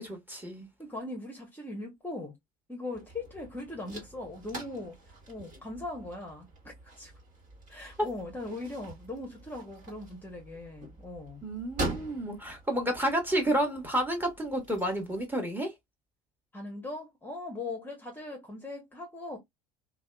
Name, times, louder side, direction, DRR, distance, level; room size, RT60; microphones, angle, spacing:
voice 1, 0.0-0.7 8.0-8.1 11.4-15.7, right 1 dB, 10° right, 1.2 m, -30 dB
voice 2, 0.8-2.3 2.7-5.0 5.3-7.1 7.7-11.4 16.5-19.4, left 2 dB, 10° left, 0.9 m, -40 dB
sound 1, 2.9-15.3, right 2 dB, 40° right, 1.4 m, -44 dB
2.7 x 2.2 x 2.2 m
hypercardioid pair, 70°, 19 cm